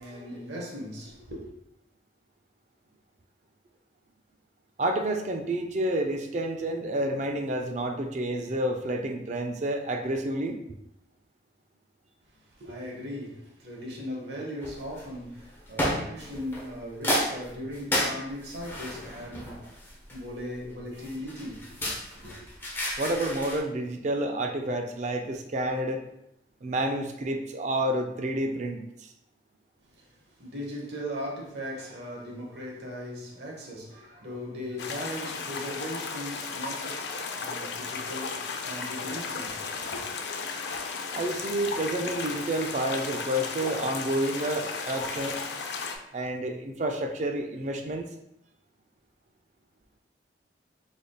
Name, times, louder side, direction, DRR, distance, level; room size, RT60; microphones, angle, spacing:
voice 1, 0.0-1.5 12.6-21.8 22.1-22.5 30.0-30.1 30.4-40.0, equal, 70° right, 0.9 m, -38 dB
voice 2, 4.8-10.6 23.0-26.0 26.6-29.1 41.1-45.4 46.1-48.0, right 1 dB, 40° right, 0.4 m, -29 dB
sound 1, 14.6-15.1 15.8-16.7 17.0-20.4 21.0-23.6, equal, 10° left, 0.6 m, -31 dB
sound 2, 34.8-46.0, left 4 dB, 70° left, 0.4 m, -35 dB
3.8 x 3.4 x 2.2 m
head